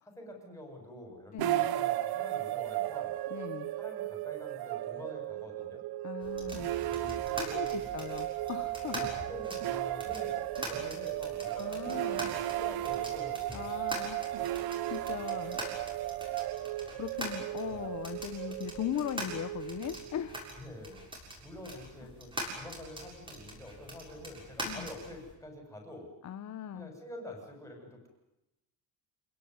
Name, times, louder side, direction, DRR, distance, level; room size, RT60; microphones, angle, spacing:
voice 1, 0.0-3.2 3.8-5.8 7.3-7.8 8.9-13.4 17.6-17.9 20.6-21.0 21.4-26.1 26.7-28.1, left 1 dB, 5° left, 3 dB, 7.2 m, -47 dB
voice 2, 1.3-1.8 3.3-3.7 6.0-6.7 7.0-9.1 10.6-10.8 11.6-12.2 13.5-14.6 14.9-15.6 17.0-20.4 24.6-24.9 26.2-26.9, left 10 dB, 35° left, 10 dB, 1.1 m, -39 dB
sound 1, 1.4-20.5, right 14 dB, 50° right, 1.1 m, -35 dB
sound 2, 6.2-25.3, right 1 dB, 10° right, 7.1 m, -44 dB
27.0 x 18.0 x 9.7 m, 0.92 s
cardioid pair, 160°, 46 cm